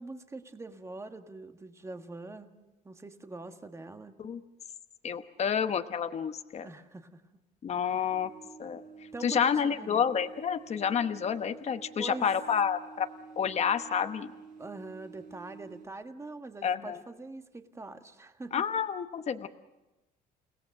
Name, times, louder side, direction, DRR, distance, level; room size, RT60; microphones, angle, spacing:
voice 1, 0.0-2.5 2.8-4.2 6.6-7.2 9.1-10.0 12.0-12.3 14.6-18.6, right 2 dB, 15° right, 7 dB, 1.6 m, -43 dB
voice 2, 5.0-6.7 7.6-8.3 8.6-13.1 13.4-14.3 16.6-17.0 18.5-19.5, left 7 dB, 40° left, 8 dB, 1.0 m, -29 dB
sound 1, 8.1-15.9, right 5 dB, 50° right, 5.1 m, -50 dB
30.0 x 17.5 x 6.6 m, 1.0 s
cardioid pair, 110°, 17 cm